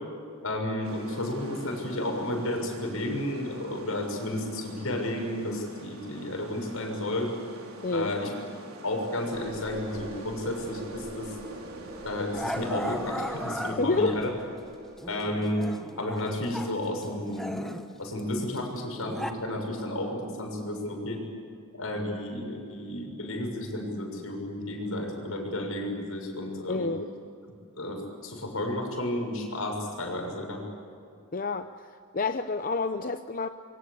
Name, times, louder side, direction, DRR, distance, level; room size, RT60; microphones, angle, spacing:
voice 1, 0.4-7.3 7.9-8.3 8.8-11.4 12.0-14.3 15.1-15.6 16.0-17.7 18.0-21.2 21.7-26.9 27.8-30.6, left 1 dB, 75° left, 2 dB, 6.8 m, -32 dB
sound 1, 0.8-13.7, right 2 dB, 75° right, 4.1 m, -46 dB
voice 2, 7.8-8.1 13.8-14.2 26.7-27.1 31.3-31.7 32.1-33.5, left 3 dB, 40° left, 8 dB, 0.7 m, -28 dB
sound 2, 9.3-15.2, equal, 45° right, 4.4 m, -43 dB
Growling, 11.4-11.6 12.3-14.4 15.0-16.8 17.0-19.3, equal, ahead, 1.4 m, -37 dB
26.5 x 24.0 x 8.3 m, 2.5 s
head